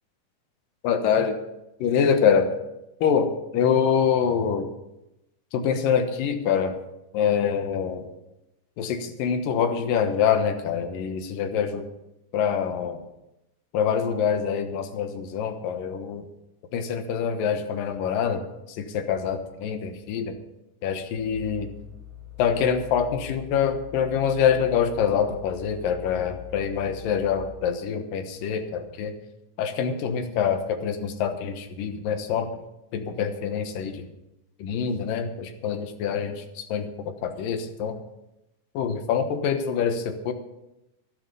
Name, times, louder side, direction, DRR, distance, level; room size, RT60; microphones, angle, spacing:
voice 1, 0.8-1.4 1.8-2.5 3.0-4.7 5.5-6.8 7.1-8.1 8.8-11.9 12.3-13.0 13.7-16.3 16.7-18.4 18.7-20.4 20.8-21.7 22.4-29.1 29.6-32.5 32.9-34.1 34.6-38.0 38.7-40.3, left 7 dB, 90° left, 7 dB, 2.9 m, -25 dB
sound 1, 21.2-27.4, left 10 dB, 85° right, 3.6 m, -43 dB
13.5 x 11.5 x 5.5 m, 0.91 s
omnidirectional pair, 3.8 m